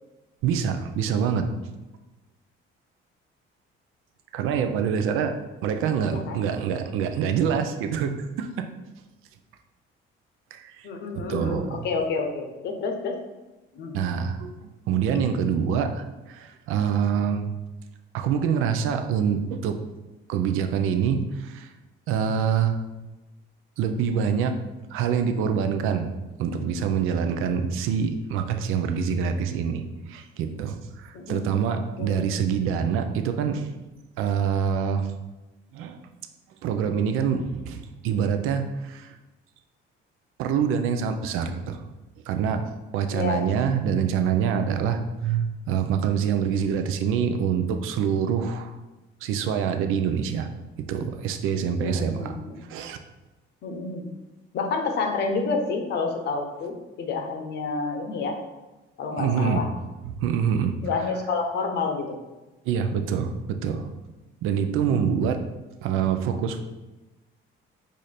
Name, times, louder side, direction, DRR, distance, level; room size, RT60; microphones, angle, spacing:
voice 1, 0.4-1.5 4.3-8.7 10.5-10.9 11.1-11.9 13.9-14.5 14.9-17.5 18.1-19.8 20.3-21.7 22.1-22.8 23.8-24.6 24.9-26.1 26.4-33.7 34.2-35.1 35.7-36.0 36.6-39.2 40.4-41.8 42.3-48.8 49.2-50.5 50.8-52.4 52.7-53.0 59.1-59.7 60.0-60.7 62.6-63.9 64.4-65.4 65.8-66.6, right 7 dB, 80° right, 7 dB, 0.5 m, -25 dB
voice 2, 6.1-6.4 10.8-13.1 13.7-14.0 31.1-31.4 32.0-32.3 43.1-43.4 51.8-52.6 53.6-54.1 54.5-58.4 59.0-59.7 60.8-62.2 64.9-65.2, left 4 dB, 55° left, 4 dB, 0.7 m, -29 dB
4.8 x 2.6 x 4.2 m, 1.1 s
cardioid pair, 155°, 21 cm